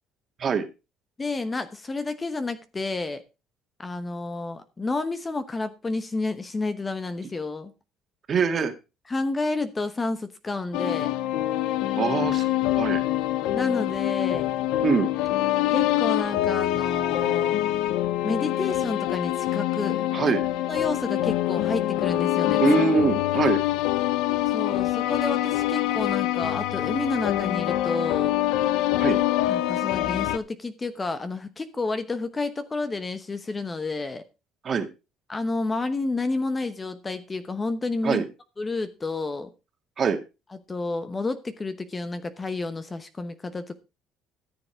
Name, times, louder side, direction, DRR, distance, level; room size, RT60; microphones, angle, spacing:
voice 1, 1.2-3.2 3.8-7.7 9.1-11.1 13.5-14.5 15.7-17.6 18.2-20.0 20.7-22.6 24.5-28.4 29.5-34.2 35.3-38.2 38.6-39.5 40.7-43.7, left 3 dB, 20° left, 11 dB, 1.0 m, -30 dB
voice 2, 8.3-8.7 12.0-12.5 12.8-13.0 14.8-15.1 20.1-20.4 22.6-23.6 29.0-29.2 34.6-34.9 38.0-38.2 40.0-40.2, right 5 dB, 40° right, 7 dB, 1.9 m, -23 dB
sound 1, 10.7-30.4, left 14 dB, 80° left, 0.6 m, -25 dB
13.5 x 7.1 x 4.5 m, 0.29 s
cardioid pair, 110°, 0 cm